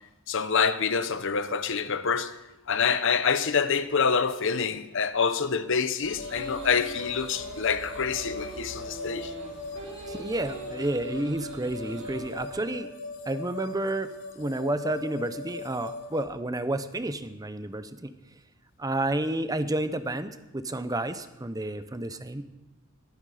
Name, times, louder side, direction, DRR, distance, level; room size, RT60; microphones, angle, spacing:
voice 1, 0.3-2.3 2.7-9.3, left 6 dB, 60° left, 0.8 m, -26 dB
sound 1, 6.0-12.6, right 2 dB, 65° right, 5.6 m, -43 dB
sound 2, 6.2-16.3, left 3 dB, 90° left, 2.4 m, -40 dB
voice 2, 10.1-12.9 13.3-14.1 14.4-18.1 18.8-22.4, right 1 dB, 15° right, 0.7 m, -30 dB
21.0 x 9.6 x 5.0 m
head